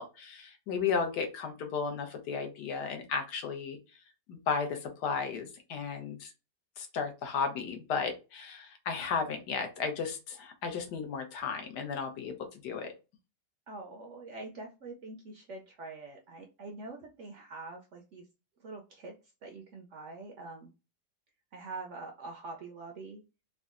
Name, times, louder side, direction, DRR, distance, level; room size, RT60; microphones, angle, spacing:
voice 1, 0.0-3.8 4.3-6.3 6.8-12.9, left 5 dB, 90° left, 6 dB, 1.3 m, -34 dB
voice 2, 13.7-18.3 18.6-19.1 19.4-20.7 21.5-23.2, right 3 dB, 70° right, 2 dB, 0.7 m, -44 dB
3.7 x 2.1 x 2.4 m, 0.29 s
omnidirectional pair, 1.7 m